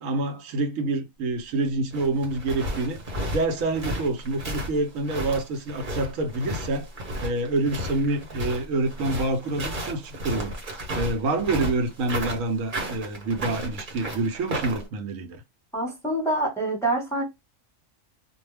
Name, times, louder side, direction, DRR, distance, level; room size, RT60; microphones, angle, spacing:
voice 1, 0.0-3.0 3.3-6.9 7.2-10.5 10.9-15.4, right 2 dB, 85° right, 1.1 m, -27 dB
sound 1, 1.7-14.9, right 1 dB, 45° right, 1.0 m, -33 dB
voice 2, 15.7-17.2, right 1 dB, ahead, 1.1 m, -26 dB
2.4 x 2.2 x 3.2 m
omnidirectional pair, 1.3 m